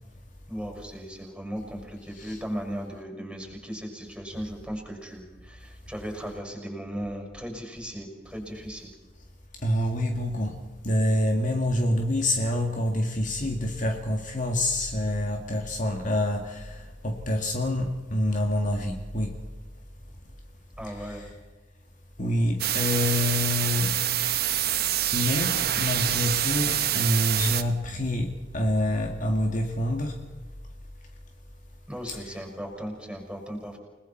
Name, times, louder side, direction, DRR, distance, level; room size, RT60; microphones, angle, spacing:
voice 1, 0.5-8.9 20.8-21.2 31.9-33.8, equal, 5° right, 6.2 m, -37 dB
voice 2, 9.6-19.4 20.9-21.3 22.2-24.1 25.1-30.2 32.1-32.4, left 1 dB, 45° left, 1.9 m, -27 dB
sound 1, 22.6-27.6, right 11 dB, 60° right, 1.1 m, -26 dB
30.0 x 20.0 x 4.5 m
head